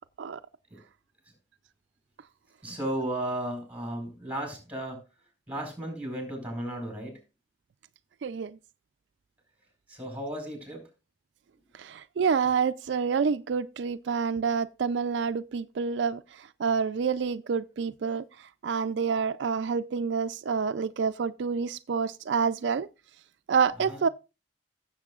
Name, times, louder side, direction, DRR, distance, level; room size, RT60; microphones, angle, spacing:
voice 1, 2.6-5.0 5.5-7.2 9.9-10.8 23.9-24.0, right 1 dB, 10° right, 4.5 m, -34 dB
voice 2, 8.2-8.6 11.7-22.9 23.5-24.1, right 6 dB, 75° right, 0.4 m, -28 dB
16.5 x 7.4 x 2.4 m
head